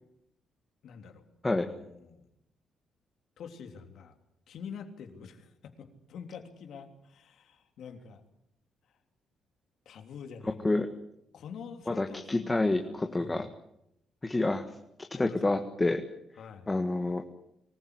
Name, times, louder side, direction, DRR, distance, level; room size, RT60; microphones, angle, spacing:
voice 1, 0.8-1.2 1.5-2.3 3.4-4.1 4.5-8.2 9.8-10.8 11.3-13.4 15.1-15.6 16.4-16.7, left 6 dB, 70° left, 5 dB, 3.3 m, -46 dB
voice 2, 11.9-13.5 14.2-14.7 15.2-16.0 16.7-17.2, left 2 dB, 20° left, 6 dB, 1.7 m, -28 dB
24.5 x 15.0 x 9.8 m, 0.79 s
cardioid pair, 90°, 0 cm